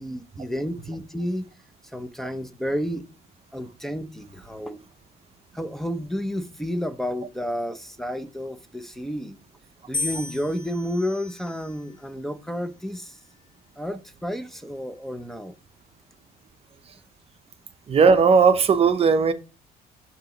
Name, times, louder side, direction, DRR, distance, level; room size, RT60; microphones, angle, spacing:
voice 1, 0.0-1.5 1.9-3.0 3.5-4.8 5.5-9.4 9.9-13.2 13.8-15.5, equal, ahead, 0.6 m, -31 dB
sound 1, 9.9-12.1 12.9-13.5, left 3 dB, 25° left, 1.0 m, -35 dB
voice 2, 17.9-19.3, right 5 dB, 35° right, 0.7 m, -17 dB
6.7 x 3.0 x 5.8 m
cardioid pair, 110°, 17 cm